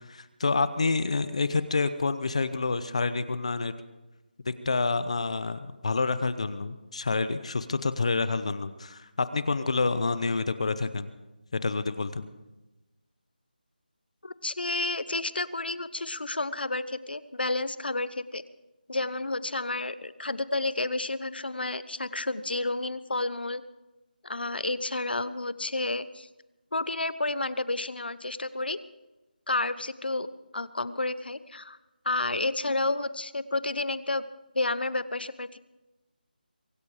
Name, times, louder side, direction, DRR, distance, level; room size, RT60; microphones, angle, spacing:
voice 1, 0.1-3.7 4.5-11.1 11.6-12.3, left 3 dB, 40° left, 13 dB, 0.8 m, -28 dB
voice 2, 14.2-18.4 18.9-23.6 24.2-26.3 26.7-28.8 29.5-30.3 30.5-31.8 32.0-34.2 34.5-35.6, left 2 dB, 85° left, 15 dB, 1.0 m, -30 dB
23.5 x 10.5 x 4.9 m, 1.1 s
figure-of-eight pair, 175°, 5 cm